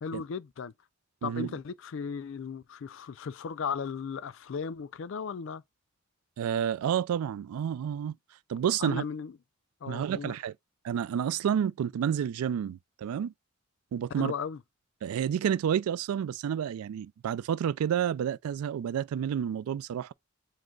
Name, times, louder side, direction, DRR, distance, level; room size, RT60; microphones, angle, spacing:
voice 1, 0.0-0.7 1.2-5.6 8.8-9.3 9.8-10.4 14.2-14.6, left 6 dB, 55° left, 0.3 m, -36 dB
voice 2, 6.4-8.1 8.5-9.0 9.9-10.5 10.8-13.3 13.9-14.3 15.0-20.1, right 8 dB, 80° right, 0.3 m, -30 dB
5.1 x 2.1 x 3.8 m
head